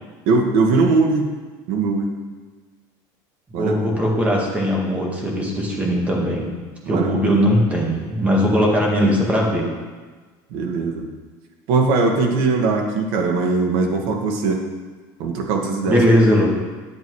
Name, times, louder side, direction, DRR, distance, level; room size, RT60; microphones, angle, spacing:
voice 1, 0.3-1.3 1.7-2.2 3.5-4.0 6.9-7.4 10.5-11.1 11.7-14.6 15.2-16.0, right 3 dB, 60° right, 2 dB, 1.7 m, -20 dB
voice 2, 3.5-6.6 6.9-9.7 15.9-16.5, equal, 15° right, -1 dB, 1.8 m, -19 dB
10.5 x 8.1 x 4.8 m, 1.4 s
cardioid pair, 170°, 10 cm